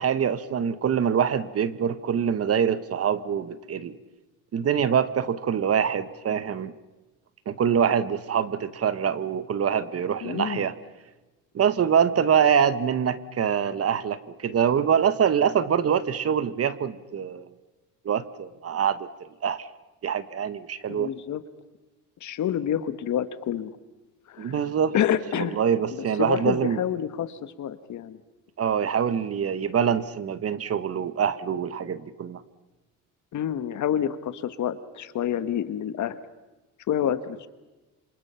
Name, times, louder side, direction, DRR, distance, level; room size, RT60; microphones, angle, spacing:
voice 1, 0.0-4.0 4.5-6.7 7.5-10.7 11.5-17.5 18.0-19.1 19.4-19.7 20.0-21.1 24.4-24.9 25.3-26.8 28.6-32.4, right 8 dB, 45° right, 14 dB, 1.4 m, -24 dB
voice 2, 10.2-10.7 20.9-21.4 22.2-23.8 24.3-24.6 24.9-25.6 25.9-28.2 33.3-36.2 36.9-37.5, left 10 dB, 55° left, 12 dB, 1.6 m, -28 dB
27.5 x 26.5 x 5.8 m, 1.1 s
cardioid pair, 95°, 34 cm